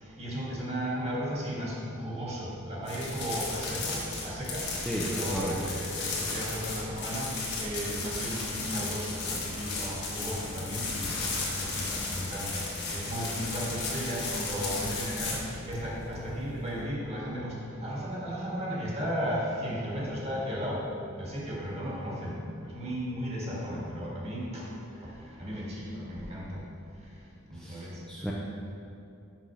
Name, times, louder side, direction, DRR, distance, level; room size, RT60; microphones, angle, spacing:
voice 1, 0.0-4.7 5.0-11.1 11.5-20.9 21.2-24.7 25.0-26.6 27.5-28.3, equal, 30° right, -5 dB, 1.6 m, -35 dB
sound 1, 2.8-16.8, left 3 dB, 50° left, 1.5 m, -35 dB
voice 2, 27.6-28.3, equal, ahead, -5 dB, 0.5 m, -34 dB
6.3 x 5.5 x 5.6 m, 2.6 s
head